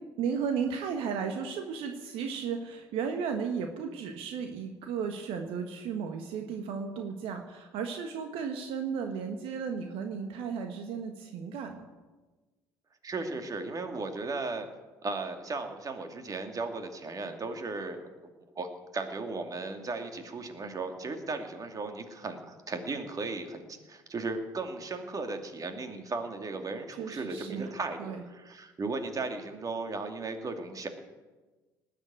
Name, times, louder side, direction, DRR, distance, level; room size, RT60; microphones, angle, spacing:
voice 1, 0.2-11.9 26.9-27.7 28.0-28.2, right 6 dB, 70° right, 5 dB, 1.5 m, -34 dB
voice 2, 13.0-14.7 15.0-18.1 18.6-18.7 18.9-30.9, right 3 dB, 35° right, 6 dB, 2.4 m, -36 dB
19.0 x 7.6 x 9.2 m, 1.2 s
hypercardioid pair, 60°, 10 cm